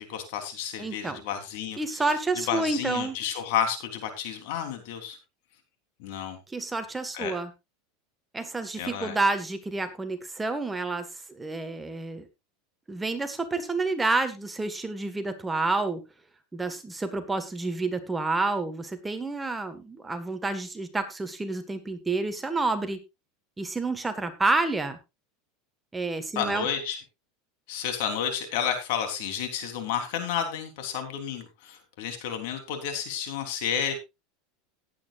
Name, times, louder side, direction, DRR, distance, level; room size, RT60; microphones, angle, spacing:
voice 1, 0.0-1.8 2.5-5.2 6.0-6.4 7.1-7.3 8.8-9.2 26.3-27.0 27.7-34.0, left 8 dB, 70° left, 6 dB, 3.5 m, -31 dB
voice 2, 0.8-1.2 1.8-3.2 6.5-7.5 8.3-12.3 12.9-16.0 16.5-23.0 23.6-25.0 25.9-26.7, right 3 dB, 10° right, 8 dB, 1.6 m, -29 dB
18.0 x 8.9 x 2.5 m, 0.24 s
supercardioid pair, 125°, 0 cm